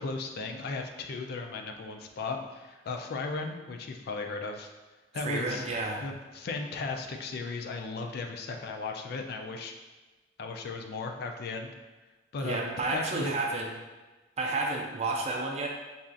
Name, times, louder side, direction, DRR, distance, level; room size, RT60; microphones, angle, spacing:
voice 1, 0.0-4.7 5.1-5.7 6.0-9.7 10.4-11.7 12.3-13.3, left 3 dB, 55° left, 4 dB, 0.3 m, -36 dB
voice 2, 5.2-6.0 12.4-13.7 14.4-15.7, right 2 dB, 35° right, 1 dB, 0.5 m, -31 dB
5.4 x 2.4 x 2.4 m, 1.2 s
head